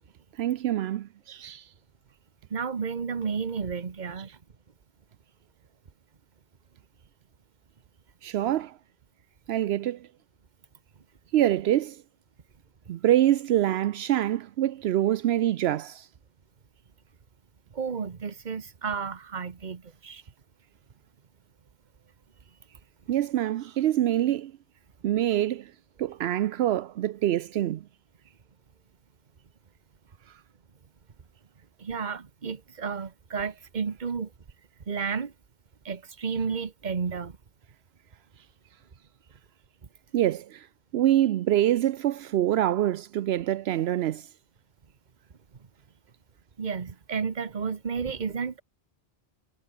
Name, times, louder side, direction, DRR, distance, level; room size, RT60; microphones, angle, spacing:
voice 1, 0.4-1.7 8.2-8.8 9.5-10.1 11.3-12.0 12.9-16.1 23.1-24.5 25.0-25.7 26.0-27.8 40.1-40.7 40.9-44.3, right 12 dB, 80° right, 0.8 m, -25 dB
voice 2, 2.5-4.3 17.7-20.2 31.8-34.3 34.9-35.3 35.8-37.4 46.6-48.6, right 5 dB, 45° right, 1.2 m, -32 dB
omnidirectional pair, 1.1 m